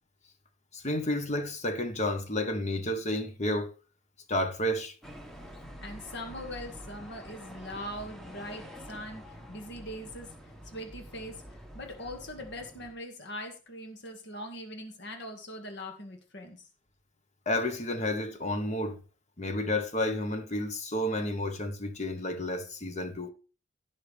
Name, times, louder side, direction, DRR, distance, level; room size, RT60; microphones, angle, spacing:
voice 1, 0.7-3.7 4.3-4.9 17.5-19.0 19.4-23.3, left 1 dB, 35° left, 1.2 m, -31 dB
sound 1, 5.0-12.9, equal, ahead, 1.4 m, -47 dB
voice 2, 5.8-9.2 9.5-10.3 10.7-11.4 11.7-16.6, left 1 dB, 60° left, 1.9 m, -41 dB
16.5 x 5.8 x 3.4 m
head